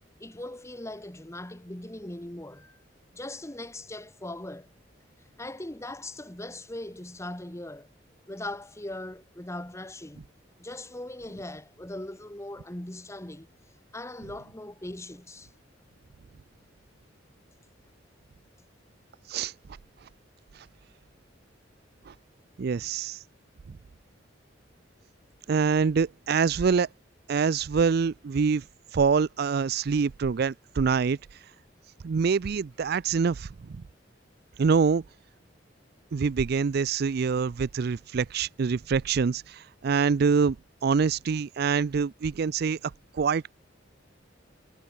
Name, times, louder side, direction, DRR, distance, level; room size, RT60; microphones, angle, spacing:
voice 1, 0.2-2.8 3.1-4.7 5.4-7.9 8.3-10.3 10.6-13.5 13.9-15.5, left 1 dB, 15° left, 1.6 m, -39 dB
voice 2, 22.6-23.2 25.5-26.9 27.3-28.6 28.9-31.2 32.0-33.5 34.6-35.0 36.1-40.6 40.8-42.8 43.1-43.5, right 5 dB, 55° right, 0.4 m, -25 dB
head